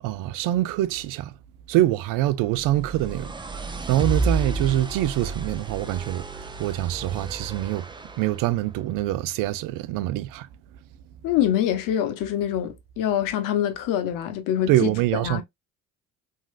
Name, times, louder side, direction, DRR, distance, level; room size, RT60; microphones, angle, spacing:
voice 1, 0.0-1.3 1.7-7.9 8.2-10.5 14.7-15.4, right 15 dB, 70° right, 0.5 m, -25 dB
sound 1, 2.4-8.4, right 3 dB, 15° right, 0.5 m, -31 dB
voice 2, 11.2-15.4, left 10 dB, 70° left, 0.7 m, -25 dB
3.0 x 2.7 x 2.3 m
supercardioid pair, 65°, 34 cm